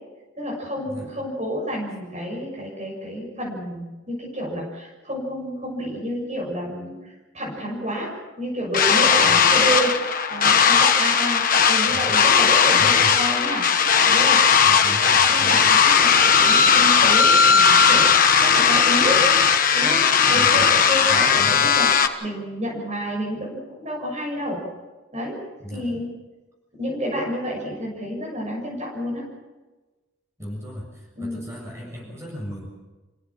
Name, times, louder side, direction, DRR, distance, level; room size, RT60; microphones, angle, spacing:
voice 1, 0.4-13.7 14.0-14.4 15.3-18.1 18.4-19.2 19.7-21.9 22.2-24.6 25.1-25.4 25.7-26.1 26.7-29.2 31.1-31.4, equal, 35° right, -2 dB, 6.9 m, -29 dB
sound 1, 8.7-22.1, left 6 dB, 40° left, 1.4 m, -17 dB
voice 2, 11.9-12.2 12.8-13.1 14.6-15.8 20.3-20.7 21.1-21.7 25.6-25.9 30.4-32.7, equal, 15° right, -2 dB, 7.2 m, -36 dB
28.0 x 17.0 x 7.3 m, 1.2 s
head